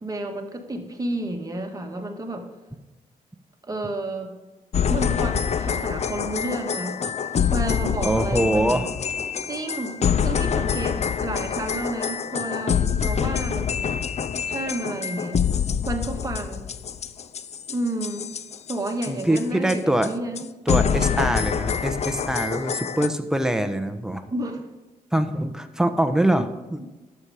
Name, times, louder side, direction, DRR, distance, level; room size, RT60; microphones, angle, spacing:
voice 1, 0.0-2.5 3.6-4.4 4.9-7.0 7.5-8.8 9.4-9.9 10.2-14.0 14.5-15.4 15.8-16.6 17.7-18.3 18.7-20.5 20.9-21.2 24.3-24.6 26.4-26.5 26.8-26.9, right 1 dB, 25° right, 3 dB, 1.6 m, -31 dB
sound 1, 4.7-19.4 19.7-19.8 20.0-20.1 20.4-20.5 20.7-23.1, left 7 dB, 45° left, 0.5 m, -26 dB
voice 2, 8.0-8.9 19.1-20.1 20.7-24.3 25.1-26.9, right 1 dB, 5° right, 8 dB, 1.0 m, -24 dB
12.0 x 6.9 x 4.9 m, 1.1 s
cardioid pair, 75°, 15 cm